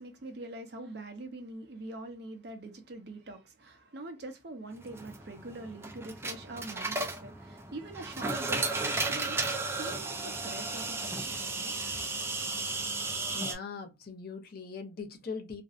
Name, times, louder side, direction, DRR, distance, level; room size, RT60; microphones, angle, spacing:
voice 1, 0.0-12.0, right 2 dB, 60° right, 0.6 m, -44 dB
sound 1, 4.8-13.5, right 3 dB, 15° right, 0.3 m, -34 dB
voice 2, 13.0-15.6, left 5 dB, 55° left, 0.5 m, -41 dB
2.5 x 2.0 x 2.4 m
head